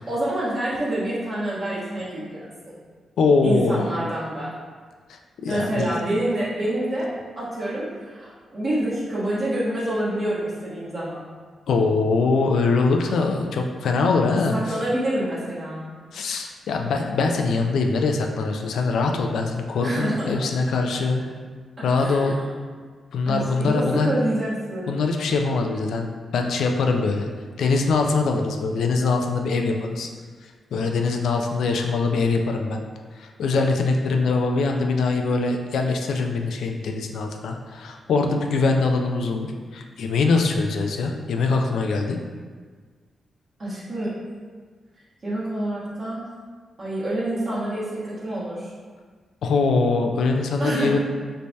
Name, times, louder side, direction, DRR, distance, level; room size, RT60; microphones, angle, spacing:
voice 1, 0.1-2.8 3.4-4.5 5.5-7.1 7.4-11.2 14.5-15.8 19.8-20.2 22.0-22.5 23.2-25.0 43.6-44.1 45.2-46.3 46.8-48.7 50.6-51.0, right 1 dB, 45° right, -9 dB, 1.2 m, -27 dB
voice 2, 3.2-3.8 5.1-6.0 11.7-14.5 16.1-21.2 21.8-22.4 23.1-24.1 24.9-26.1 26.3-27.3 27.6-30.1 30.7-32.8 33.2-39.5 39.7-42.2 49.4-51.0, left 4 dB, 85° left, 3 dB, 0.3 m, -22 dB
3.3 x 3.2 x 2.7 m, 1.5 s
cardioid pair, 90°, 0 cm